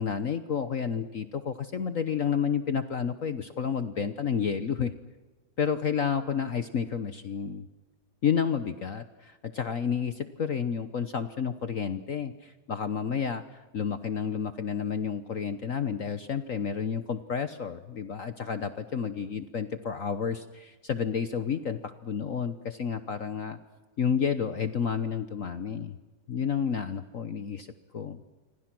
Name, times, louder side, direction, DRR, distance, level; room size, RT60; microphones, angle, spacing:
voice 1, 0.0-4.9 5.6-7.7 8.2-23.6 24.0-26.0 26.3-27.7 27.9-28.2, left 7 dB, 50° left, 10 dB, 1.1 m, -30 dB
28.0 x 25.0 x 6.1 m, 1.3 s
omnidirectional pair, 2.3 m